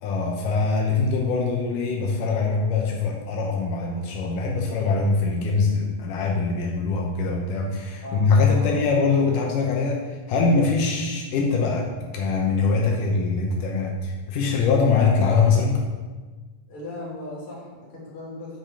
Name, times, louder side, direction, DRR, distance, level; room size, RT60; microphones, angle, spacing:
voice 1, 0.0-15.8, left 4 dB, 85° left, 0 dB, 2.5 m, -23 dB
voice 2, 16.7-18.6, left 1 dB, 40° left, -6 dB, 3.5 m, -37 dB
6.9 x 6.2 x 6.7 m, 1.4 s
omnidirectional pair, 3.6 m